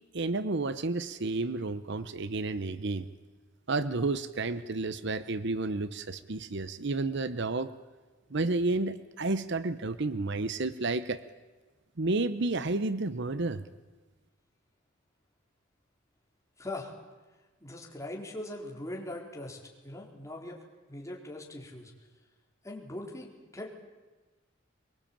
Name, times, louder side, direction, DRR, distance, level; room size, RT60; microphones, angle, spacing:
voice 1, 0.1-3.1 3.7-7.7 8.3-11.2 12.0-13.6, right 3 dB, 60° right, 13 dB, 0.9 m, -31 dB
voice 2, 16.6-16.9 17.6-19.6 19.8-20.6 20.9-21.9 22.6-23.8, left 1 dB, 15° left, -1 dB, 4.6 m, -41 dB
24.0 x 23.5 x 8.8 m, 1.3 s
head